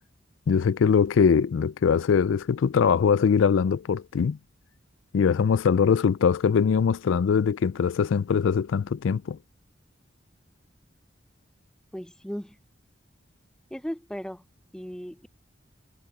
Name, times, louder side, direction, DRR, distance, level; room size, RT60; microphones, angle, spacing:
voice 1, 0.5-4.4 5.1-9.4, left 6 dB, 90° left, 0.4 m, -22 dB
voice 2, 11.9-12.6 13.7-14.4 14.7-15.3, equal, 5° left, 0.6 m, -36 dB
head